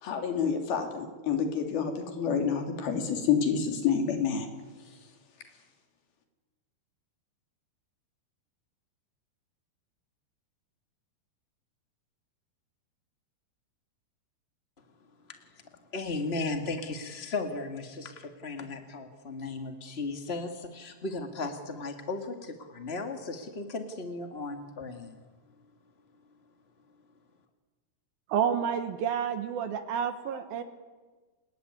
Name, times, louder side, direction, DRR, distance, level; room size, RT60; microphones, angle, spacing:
voice 1, 0.0-4.5, left 7 dB, 75° left, 5 dB, 5.0 m, -28 dB
voice 2, 15.9-25.2, left 3 dB, 40° left, 6 dB, 0.9 m, -36 dB
voice 3, 28.3-30.6, right 8 dB, 70° right, 9 dB, 3.1 m, -29 dB
29.5 x 20.5 x 9.7 m, 1.4 s
omnidirectional pair, 4.5 m